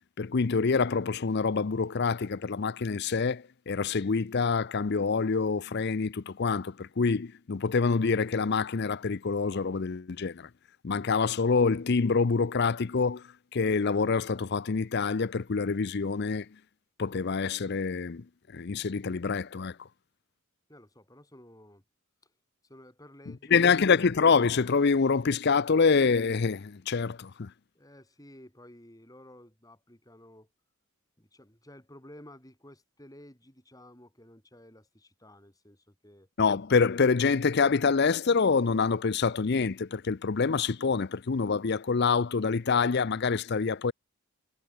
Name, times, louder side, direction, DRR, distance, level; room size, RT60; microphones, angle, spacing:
voice 1, 0.2-10.5 10.8-13.2 13.5-16.5 17.0-18.2 18.5-19.8 23.5-27.5 36.4-43.9, left 5 dB, 50° left, 0.5 m, -26 dB
voice 2, 20.7-21.8 22.2-22.3 22.6-23.9 27.7-30.5 31.2-36.3, left 1 dB, 15° left, 4.6 m, -53 dB
head